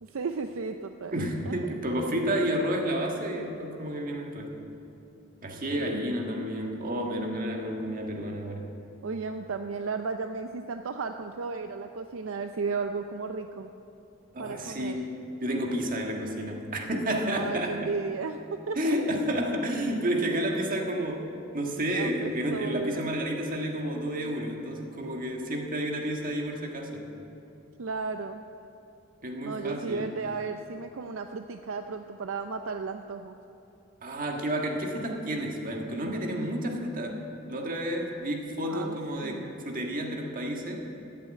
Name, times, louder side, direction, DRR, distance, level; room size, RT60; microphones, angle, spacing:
voice 1, 0.0-1.5 1.9-2.1 5.8-6.6 9.0-13.7 14.4-15.0 17.3-18.4 18.7-19.0 21.9-23.2 27.8-28.4 29.4-33.4 38.7-39.5, right 4 dB, 70° right, 7 dB, 0.5 m, -34 dB
voice 2, 1.1-4.7 5.4-8.7 14.3-15.1 15.4-17.9 18.7-21.2 21.5-27.1 29.2-30.1 34.0-40.9, equal, 45° right, 1 dB, 1.6 m, -31 dB
14.0 x 7.7 x 9.0 m, 2.9 s
head